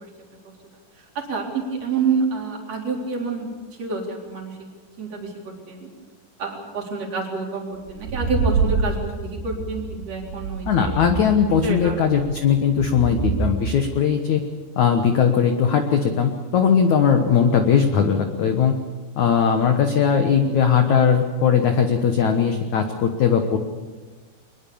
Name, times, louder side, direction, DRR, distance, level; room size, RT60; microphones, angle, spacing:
voice 1, 1.2-3.5 3.8-4.5 5.0-5.3 5.7-5.9 6.4-10.9 11.6-11.9, right 4 dB, 35° right, 0 dB, 4.7 m, -27 dB
sound 1, 7.9-13.5, right 4 dB, 85° right, 4.2 m, -27 dB
voice 2, 10.7-14.4 14.8-18.8 19.2-23.6, left 7 dB, 65° left, 5 dB, 1.9 m, -19 dB
23.5 x 21.0 x 7.1 m, 1.3 s
omnidirectional pair, 5.0 m